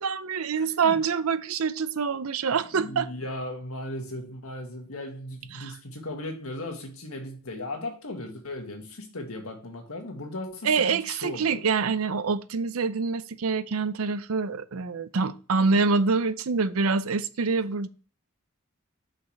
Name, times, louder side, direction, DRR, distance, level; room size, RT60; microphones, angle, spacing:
voice 1, 0.0-3.1 5.5-5.7 10.6-17.9, right 5 dB, 85° right, 0.6 m, -26 dB
voice 2, 0.6-1.0 2.7-11.6, left 1 dB, 90° left, 1.8 m, -37 dB
6.6 x 5.9 x 3.2 m
head